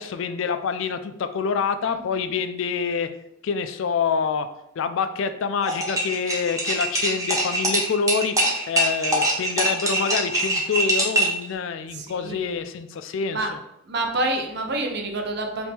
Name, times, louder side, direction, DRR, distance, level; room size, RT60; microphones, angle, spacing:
voice 1, 0.0-3.1 3.4-4.5 4.8-8.4 8.7-13.4, left 5 dB, 65° left, 10 dB, 0.3 m, -26 dB
voice 2, 1.8-2.3 11.9-12.6 13.3-13.5 13.8-15.7, right 2 dB, 50° right, 4 dB, 0.6 m, -28 dB
sound 1, 5.6-11.4, right 1 dB, 15° right, 0.7 m, -23 dB
3.5 x 2.6 x 4.2 m, 0.79 s
head